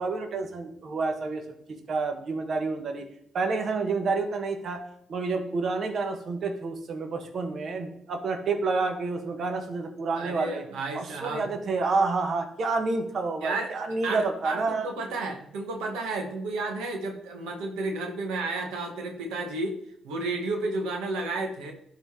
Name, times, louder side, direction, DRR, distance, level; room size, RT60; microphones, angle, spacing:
voice 1, 0.0-1.4 1.9-3.0 3.3-4.8 5.1-10.6 10.9-14.9, right 3 dB, 60° right, 5 dB, 1.2 m, -29 dB
voice 2, 10.2-11.5 13.4-13.7 14.0-19.8 20.0-21.7, right 2 dB, 90° right, 3 dB, 1.2 m, -32 dB
11.5 x 3.9 x 3.7 m, 0.72 s
supercardioid pair, 65°, 0 cm